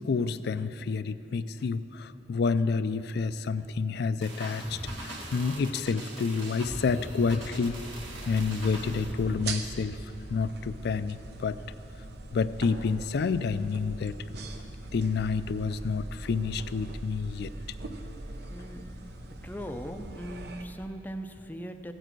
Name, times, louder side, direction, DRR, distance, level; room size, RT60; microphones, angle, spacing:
voice 1, 0.0-7.8 8.3-11.6 12.3-14.2 14.9-17.5, left 4 dB, 60° left, 14 dB, 0.4 m, -29 dB
sound 1, 4.2-9.5, right 1 dB, 80° right, 2.0 m, -40 dB
sound 2, 7.6-20.7, right 2 dB, 60° right, 0.8 m, -42 dB
voice 2, 18.5-18.9 19.4-21.9, equal, 10° left, 6 dB, 0.5 m, -39 dB
15.5 x 9.1 x 4.6 m, 2.8 s
head